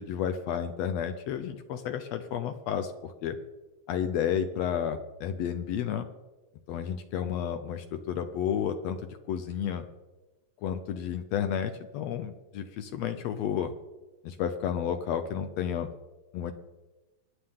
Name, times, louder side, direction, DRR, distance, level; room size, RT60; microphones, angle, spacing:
voice 1, 0.0-3.4 3.9-6.1 6.7-9.8 10.6-13.7 14.2-15.9 16.3-16.5, left 8 dB, 75° left, 9 dB, 1.6 m, -31 dB
25.0 x 9.9 x 3.7 m, 1.1 s
omnidirectional pair, 3.8 m